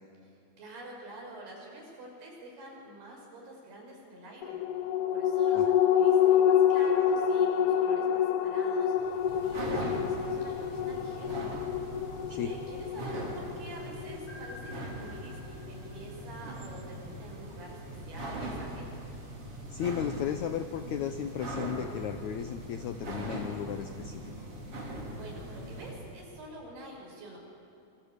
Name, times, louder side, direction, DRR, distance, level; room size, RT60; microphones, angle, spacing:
voice 1, 0.6-4.6 5.1-11.6 12.3-18.9 25.1-27.4, right 1 dB, 75° right, -1 dB, 7.8 m, -47 dB
sound 1, 4.4-15.2 15.6-15.7, left 9 dB, 65° left, 2.0 m, -27 dB
sound 2, 9.0-26.1, right 1 dB, 35° right, 4.3 m, -40 dB
sound 3, 14.3-17.2, left 1 dB, 50° left, 6.0 m, -51 dB
voice 2, 19.7-24.3, left 9 dB, 85° left, 9 dB, 1.6 m, -35 dB
26.0 x 25.0 x 8.2 m, 2.9 s
omnidirectional pair, 4.6 m